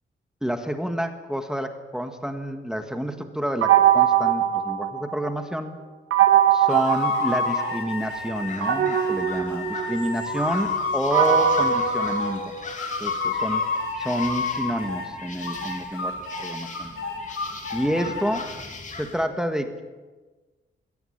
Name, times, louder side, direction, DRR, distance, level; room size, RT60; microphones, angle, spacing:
voice 1, 0.4-5.8 6.5-12.5 13.0-13.6 14.0-16.9 17.7-18.5 18.9-19.8, equal, 5° right, 6 dB, 1.5 m, -29 dB
sound 1, 3.6-5.4 6.1-7.9 8.6-12.9, right 10 dB, 85° right, 2.4 m, -22 dB
sound 2, 6.7-12.4 12.8-15.1 15.4-18.3, left 4 dB, 90° left, 4.5 m, -29 dB
sound 3, 8.0-19.3, left 4 dB, 35° left, 2.7 m, -40 dB
21.5 x 17.5 x 8.7 m, 1.3 s
wide cardioid pair, 165°, 21 cm